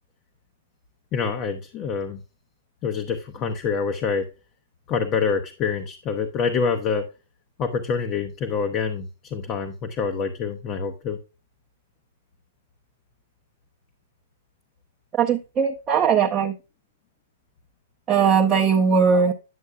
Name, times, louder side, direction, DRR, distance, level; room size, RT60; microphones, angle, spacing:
voice 1, 1.1-2.2 2.8-4.3 4.9-7.0 7.6-11.2, left 5 dB, 35° left, 0.8 m, -26 dB
voice 2, 15.2-16.5 18.1-19.3, right 6 dB, 25° right, 0.7 m, -19 dB
9.6 x 6.3 x 2.3 m
hypercardioid pair, 120°, 0 cm